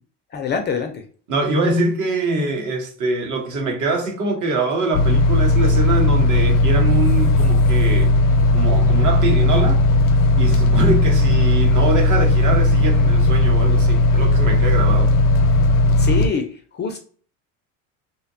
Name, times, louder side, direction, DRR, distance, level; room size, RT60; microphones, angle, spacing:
voice 1, 0.3-1.0 16.0-17.0, left 5 dB, 30° left, 0.3 m, -25 dB
voice 2, 1.3-8.1 8.5-9.8 10.3-15.1, right 2 dB, 50° right, 0.9 m, -23 dB
sound 1, 4.9-16.3, left 2 dB, 90° left, 0.5 m, -16 dB
2.7 x 2.1 x 2.6 m
supercardioid pair, 95°, 38 cm